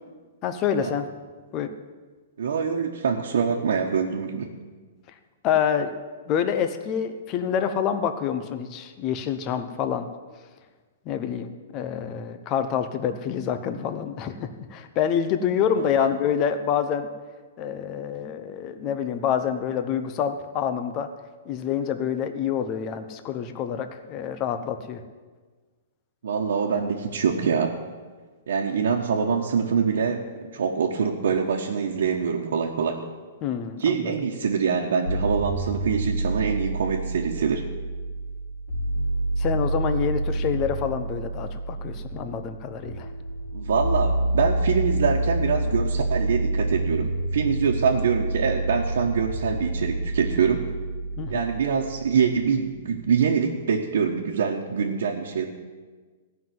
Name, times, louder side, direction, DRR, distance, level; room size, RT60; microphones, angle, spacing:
voice 1, 0.4-1.1 1.5-1.7 5.4-5.9 6.3-10.1 11.1-17.1 17.6-21.1 21.4-25.0 33.4-34.1 39.4-43.1 51.2-51.4, left 8 dB, 25° left, 9 dB, 0.9 m, -27 dB
voice 2, 2.4-4.5 15.8-16.1 26.2-27.8 28.5-30.2 30.5-33.0 33.8-37.7 43.5-50.6 51.3-55.5, right 6 dB, 75° right, -2 dB, 1.4 m, -24 dB
sound 1, 35.1-53.0, right 2 dB, 85° left, 4.0 m, -28 dB
16.0 x 5.9 x 9.4 m, 1.4 s
hypercardioid pair, 165°, 0 cm